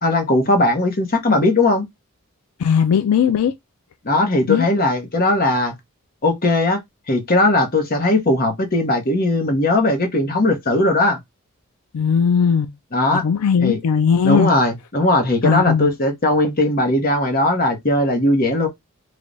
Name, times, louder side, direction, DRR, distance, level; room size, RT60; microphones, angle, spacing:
voice 1, 0.0-1.9 4.0-5.7 6.2-6.8 7.1-11.2 12.9-13.2 13.6-13.8 14.2-18.7, left 2 dB, 40° left, 0.9 m, -18 dB
voice 2, 2.6-3.5 4.5-4.6 11.9-12.7 13.1-14.5 15.4-15.9, left 7 dB, 85° left, 0.4 m, -18 dB
3.3 x 2.2 x 3.9 m
head